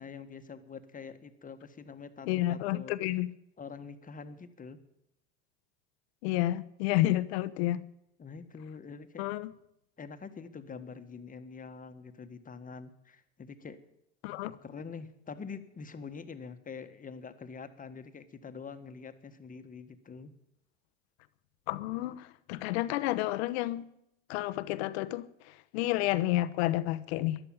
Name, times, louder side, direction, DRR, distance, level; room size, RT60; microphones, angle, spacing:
voice 1, 0.0-3.0 3.6-4.8 8.2-9.2 10.0-13.8 14.5-20.3, left 5 dB, 25° left, 1.6 m, -45 dB
voice 2, 2.3-3.3 6.2-7.8 9.2-9.5 14.2-14.5 21.7-23.9 24.3-27.4, left 16 dB, 70° left, 1.0 m, -30 dB
13.0 x 11.5 x 8.9 m
hypercardioid pair, 85°, 34 cm